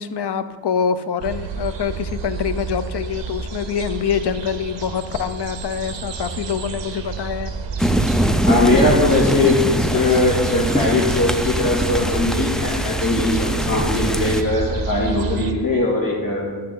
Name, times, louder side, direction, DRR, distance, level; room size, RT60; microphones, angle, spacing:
voice 1, 0.0-7.5, left 7 dB, 65° left, 11 dB, 0.6 m, -25 dB
sound 1, 1.2-15.5, right 5 dB, 80° right, 0.8 m, -29 dB
sound 2, 7.8-14.4, equal, ahead, 0.3 m, -23 dB
voice 2, 8.4-9.6 9.9-16.5, left 2 dB, 50° left, -4 dB, 2.4 m, -20 dB
12.0 x 6.6 x 3.8 m, 1.5 s
wide cardioid pair, 125°, 44 cm